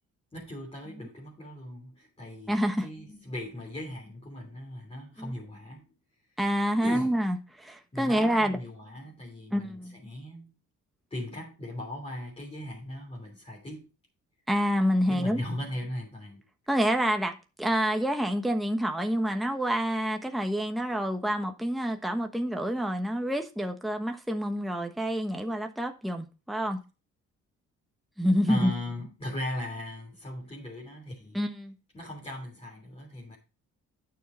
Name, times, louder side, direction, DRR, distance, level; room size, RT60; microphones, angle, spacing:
voice 1, 0.3-5.9 6.8-7.1 7.9-10.6 11.1-13.9 15.0-16.5 28.4-31.4 31.9-33.4, left 1 dB, 20° left, 3.2 m, -38 dB
voice 2, 2.5-2.9 5.2-5.3 6.4-8.6 9.5-10.0 14.5-15.4 16.7-17.3 17.6-26.8 28.2-28.7 31.3-31.7, equal, ahead, 1.2 m, -27 dB
9.3 x 6.5 x 4.3 m
cardioid pair, 90°, 30 cm